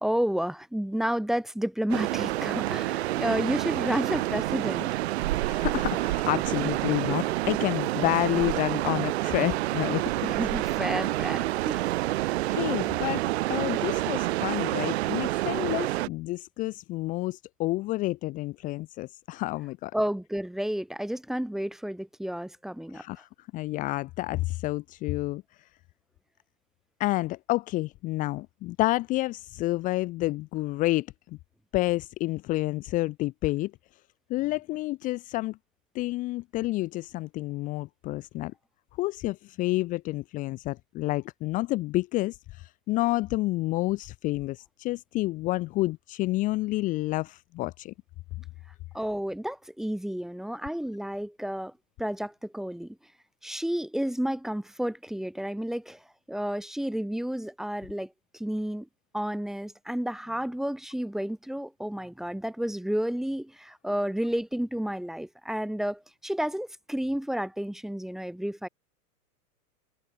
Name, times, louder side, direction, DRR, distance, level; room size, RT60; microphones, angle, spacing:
voice 1, 0.0-4.9 10.3-12.0 19.9-23.0 48.9-51.7 52.0-53.0 53.4-56.0 56.3-58.9 59.1-68.7, equal, ahead, 1.7 m, -31 dB
sound 1, 1.9-16.1, right 17 dB, 40° right, 3.0 m, -28 dB
voice 2, 5.5-10.3 12.2-13.2 13.5-19.9 22.9-25.7 27.0-31.4 31.7-33.7 34.3-35.6 35.9-38.5 39.0-47.9, left 18 dB, 15° left, 1.2 m, -29 dB
supercardioid pair, 170°, 48 cm